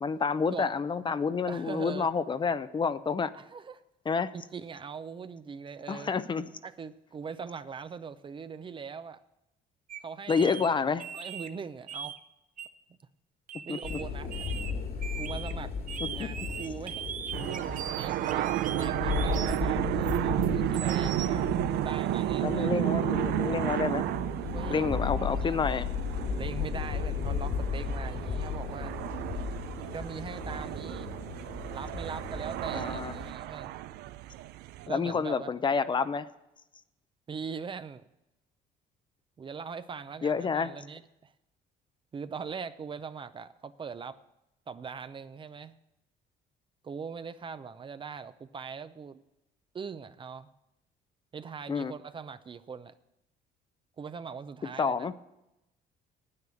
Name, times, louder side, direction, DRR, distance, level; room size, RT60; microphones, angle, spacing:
voice 1, 0.0-3.3 4.1-4.3 5.9-6.5 10.3-11.0 13.7-14.0 16.2-16.3 22.4-24.1 24.7-26.0 32.7-33.1 34.9-36.3 40.2-40.7 51.7-51.9 54.8-55.1, left 5 dB, 30° left, 13 dB, 0.5 m, -29 dB
voice 2, 1.5-2.1 3.3-3.8 4.3-6.1 6.6-9.2 10.0-10.9 11.1-12.2 13.7-14.5 15.2-15.7 16.1-17.1 17.9-22.8 24.5-25.1 25.4-25.6 26.4-28.9 29.9-31.1 31.7-33.8 34.9-35.5 37.3-38.0 39.4-41.3 42.1-44.2 44.7-45.7 46.8-49.2 49.7-50.5 51.3-53.0 54.0-55.1, right 6 dB, 30° right, 13 dB, 0.5 m, -41 dB
sound 1, 9.9-10.0 10.3-10.7 11.0-11.5 11.9-12.2 12.6-12.7 13.5-14.0 14.3-14.7 15.0-15.5 15.9-19.6 20.0-21.3, right 8 dB, 50° right, 0.8 m, -40 dB
sound 2, 13.8-33.3, left 6 dB, 65° left, 2.3 m, -35 dB
sound 3, 17.3-34.9, right 14 dB, 80° right, 0.5 m, -32 dB
9.7 x 9.1 x 7.1 m, 0.89 s
cardioid pair, 110°, 17 cm